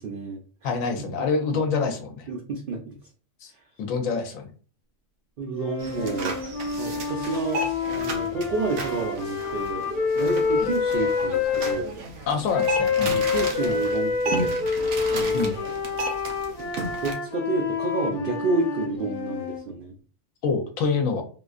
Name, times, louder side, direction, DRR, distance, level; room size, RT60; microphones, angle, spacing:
voice 1, 0.0-0.7 2.3-3.0 3.5-3.6 5.4-6.4 6.8-7.6 7.9-9.8 10.2-11.9 13.1-14.6 15.1-15.7 17.0-20.0, right 3 dB, 60° right, 1 dB, 0.5 m, -30 dB
voice 2, 0.6-2.3 3.4-3.5 3.8-4.5 10.6-10.7 12.3-13.2 15.3-15.5 20.4-21.2, left 5 dB, 85° left, 4 dB, 1.0 m, -26 dB
sound 1, 5.6-11.8 12.5-19.6, left 5 dB, 50° left, 0.4 m, -27 dB
sound 2, 5.8-17.1, right 2 dB, 90° right, 1.2 m, -34 dB
3.7 x 2.5 x 2.4 m, 0.40 s
omnidirectional pair, 1.4 m